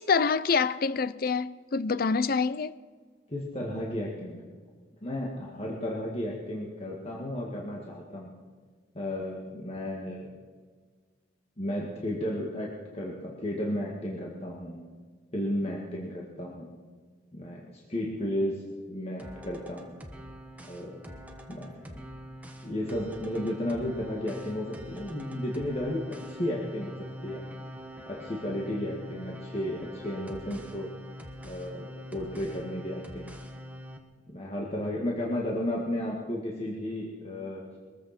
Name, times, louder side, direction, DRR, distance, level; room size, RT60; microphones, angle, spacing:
voice 1, 0.0-2.7, left 5 dB, 50° left, 0.5 m, -26 dB
voice 2, 3.3-4.4 5.0-8.3 8.9-10.3 11.6-14.8 15.3-16.7 17.3-19.9 20.7-21.0 21.5-21.8 22.6-27.4 28.1-30.9 31.4-33.3 34.3-37.6, left 1 dB, 30° left, 2.0 m, -33 dB
sound 1, 19.2-34.0, equal, 10° right, 1.3 m, -44 dB
22.5 x 14.5 x 4.4 m
head